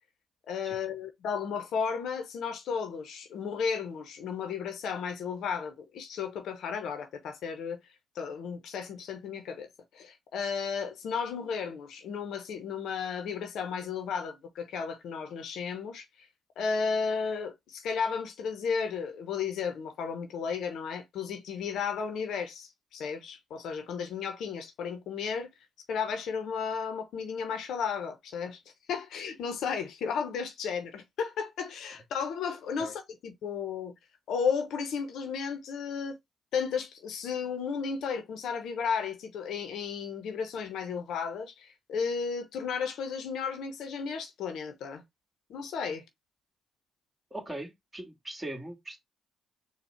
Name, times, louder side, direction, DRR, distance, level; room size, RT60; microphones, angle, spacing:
voice 1, 0.5-7.8 8.1-16.3 16.6-25.5 25.9-28.6 28.9-33.9 34.3-36.2 36.5-45.0 45.5-46.0, left 6 dB, 70° left, 0.8 m, -34 dB
voice 2, 47.3-49.0, right 1 dB, 20° right, 2.2 m, -40 dB
4.3 x 2.3 x 4.3 m
hypercardioid pair, 50°, 0 cm